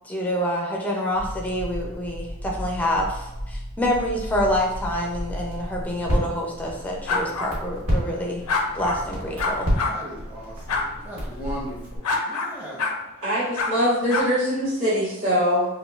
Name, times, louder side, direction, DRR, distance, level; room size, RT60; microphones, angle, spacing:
voice 1, 0.0-8.4 8.7-9.7, equal, 5° left, -1 dB, 0.5 m, -27 dB
Crackle, 1.1-12.0, equal, 80° right, 1.3 m, -31 dB
sound 1, 7.1-7.5 8.5-9.0 9.4-9.9 10.7-10.9 12.0-12.5 12.8-13.0 13.6-13.7 14.1-14.3, left 4 dB, 90° left, 0.5 m, -25 dB
voice 2, 8.9-13.0, equal, 10° right, -6 dB, 1.0 m, -38 dB
voice 3, 13.2-15.7, equal, 60° right, -9 dB, 1.4 m, -22 dB
5.1 x 2.3 x 2.4 m, 0.95 s
head